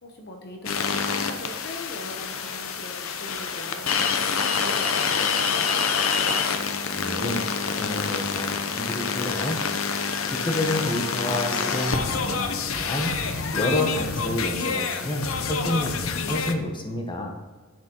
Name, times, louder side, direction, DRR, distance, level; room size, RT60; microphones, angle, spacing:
voice 1, 0.0-5.8, left 1 dB, 50° left, 2 dB, 0.9 m, -41 dB
sound 1, 0.7-16.5, left 5 dB, 90° left, 0.8 m, -27 dB
voice 2, 6.9-9.6 10.3-13.1 13.5-17.3, left 1 dB, 25° left, 2 dB, 1.1 m, -29 dB
9.8 x 7.3 x 3.0 m, 1.4 s
head